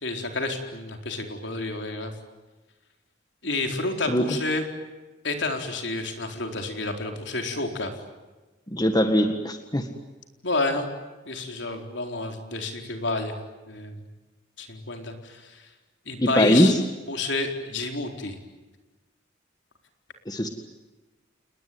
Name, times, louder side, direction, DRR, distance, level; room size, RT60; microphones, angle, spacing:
voice 1, 0.0-2.1 3.4-4.6 5.2-7.9 10.4-10.9 11.3-13.3 13.6-14.0 14.6-15.6 16.1-16.7 17.1-18.4, left 2 dB, 60° left, 4 dB, 4.3 m, -29 dB
voice 2, 8.7-9.9 16.2-16.8 20.3-20.5, equal, 20° left, 6 dB, 1.7 m, -21 dB
29.5 x 20.0 x 9.5 m, 1.2 s
head